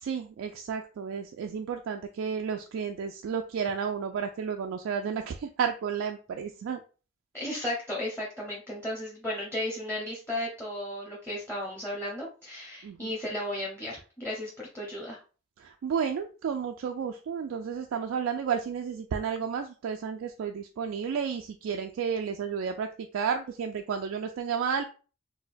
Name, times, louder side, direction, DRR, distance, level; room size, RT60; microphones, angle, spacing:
voice 1, 0.0-6.8 12.8-13.1 15.6-24.8, right 6 dB, 80° right, 4 dB, 0.3 m, -32 dB
voice 2, 7.3-15.2, left 1 dB, 10° left, -5 dB, 0.7 m, -34 dB
4.1 x 2.2 x 2.5 m, 0.36 s
head